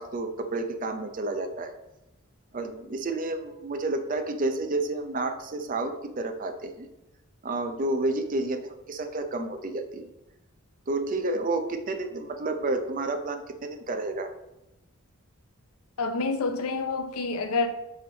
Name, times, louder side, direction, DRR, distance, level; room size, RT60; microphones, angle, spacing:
voice 1, 0.0-1.7 2.5-6.9 7.4-10.1 10.9-14.3, right 2 dB, 40° right, 0.5 m, -30 dB
voice 2, 16.0-17.7, left 3 dB, 80° left, 0.6 m, -28 dB
7.8 x 3.3 x 3.9 m
head